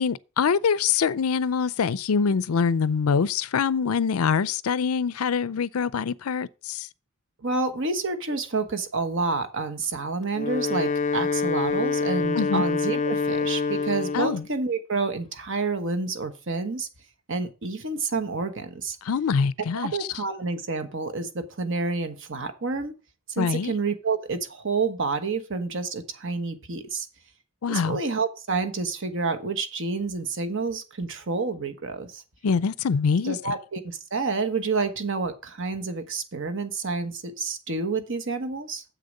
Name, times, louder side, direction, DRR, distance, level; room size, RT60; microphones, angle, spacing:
voice 1, 0.0-6.9 12.4-12.6 14.1-14.4 19.0-20.1 23.4-23.7 27.6-28.0 32.4-33.4, left 6 dB, 85° left, 0.5 m, -24 dB
voice 2, 7.4-16.9 17.3-19.0 19.7-22.9 23.3-27.1 27.7-32.2 33.2-38.8, right 4 dB, 60° right, 1.2 m, -29 dB
Wind instrument woodwind instrument, 10.2-14.5, left 4 dB, 35° left, 0.4 m, -26 dB
7.7 x 6.6 x 5.3 m
head